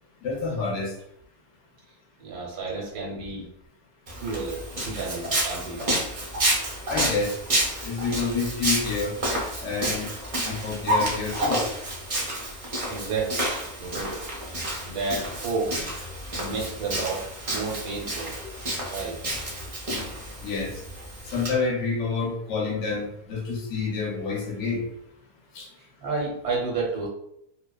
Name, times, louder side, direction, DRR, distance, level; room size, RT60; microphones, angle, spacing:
voice 1, 0.2-0.9 6.9-7.3 7.8-9.1 9.6-10.1 10.4-11.6 20.4-20.8 21.3-24.8 25.5-25.7, left 4 dB, 60° left, 0 dB, 0.9 m, -28 dB
voice 2, 2.2-3.4 4.2-5.9 12.9-13.4 13.8-14.2 14.9-15.7 16.3-18.3 18.9-19.2 25.8-27.1, right 3 dB, 90° right, -3 dB, 1.2 m, -31 dB
Walk footsteps, 4.1-21.5, right 1 dB, 50° right, 0.4 m, -30 dB
2.7 x 2.1 x 2.2 m, 0.75 s
omnidirectional pair, 1.6 m